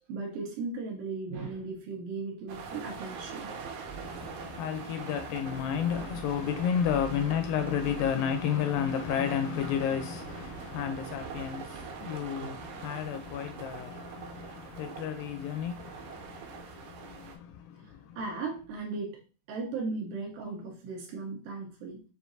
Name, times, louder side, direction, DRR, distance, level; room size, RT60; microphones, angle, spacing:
voice 1, 0.1-3.5 12.4-12.6 18.2-19.2 19.5-22.0, right 3 dB, 75° right, 2.3 m, -37 dB
sound 1, 2.5-17.4, right 5 dB, 90° right, 2.7 m, -43 dB
voice 2, 3.9-18.2, left 8 dB, 80° left, 2.1 m, -32 dB
6.9 x 2.5 x 2.6 m
omnidirectional pair, 4.3 m